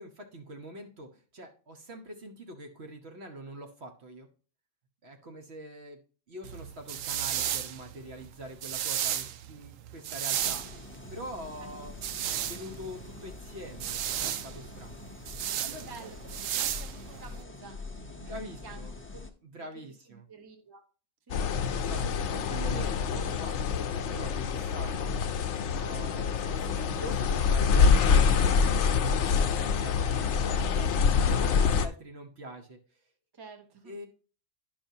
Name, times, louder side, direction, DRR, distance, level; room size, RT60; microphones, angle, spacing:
voice 1, 0.0-4.3 5.0-6.0 6.3-10.6 11.1-12.0 12.3-15.2 15.6-15.9 18.0-18.9 19.4-20.3 21.7-25.1 25.7-33.0 33.8-34.1, right 1 dB, 55° right, 4 dB, 1.2 m, -44 dB
sound 1, 6.4-17.4, right 10 dB, 80° right, 1.0 m, -34 dB
sound 2, 10.3-19.3, left 3 dB, 15° left, 0.5 m, -45 dB
voice 2, 15.7-17.8 18.2-18.8 19.1-19.2 19.6-19.7 20.1-20.8 21.3-21.7 33.3-33.9, right 4 dB, 20° right, 4 dB, 0.9 m, -50 dB
sound 3, 21.3-31.9, left 6 dB, 70° left, 0.9 m, -26 dB
10.5 x 5.5 x 2.7 m, 0.39 s
omnidirectional pair, 1.3 m